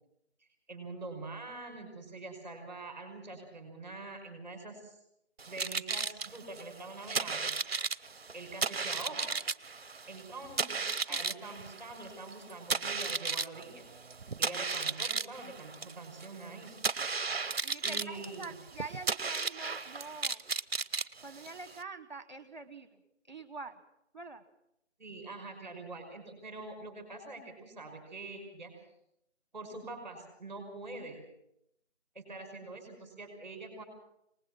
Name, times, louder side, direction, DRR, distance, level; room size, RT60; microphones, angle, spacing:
voice 1, 0.7-5.0 5.5-7.5 8.0-9.3 10.1-13.9 14.4-16.8 17.8-18.6 25.0-28.7 29.5-31.2 32.1-33.8, right 3 dB, 10° right, 1 dB, 5.5 m, -45 dB
sound 1, 5.4-21.8, right 4 dB, 60° right, 0.7 m, -35 dB
voice 2, 17.6-20.4 21.2-22.9 23.3-23.8 24.1-24.4, right 3 dB, 40° right, 11 dB, 1.2 m, -45 dB
25.0 x 19.5 x 6.2 m, 0.79 s
figure-of-eight pair, 175°, 35 cm